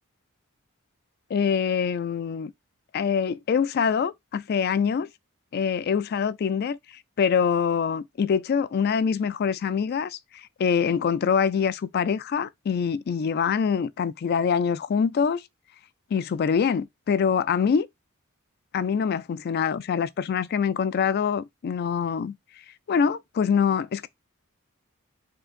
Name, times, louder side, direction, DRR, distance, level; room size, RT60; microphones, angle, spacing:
voice 1, 1.3-2.5 2.9-5.1 5.5-6.8 7.2-10.2 10.6-15.4 16.1-17.9 18.7-22.3 22.9-24.1, left 6 dB, 45° left, 0.3 m, -24 dB
4.5 x 3.7 x 2.5 m
head